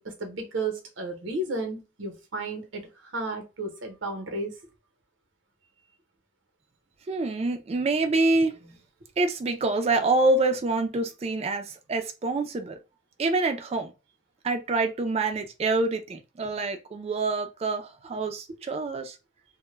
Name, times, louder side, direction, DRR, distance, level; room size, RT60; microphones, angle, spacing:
voice 1, 0.0-4.5, right 2 dB, 80° right, 0.8 m, -33 dB
voice 2, 7.1-8.6 9.2-12.8 13.2-13.9 14.4-19.2, right 3 dB, 35° right, 0.3 m, -26 dB
2.2 x 2.1 x 3.1 m
head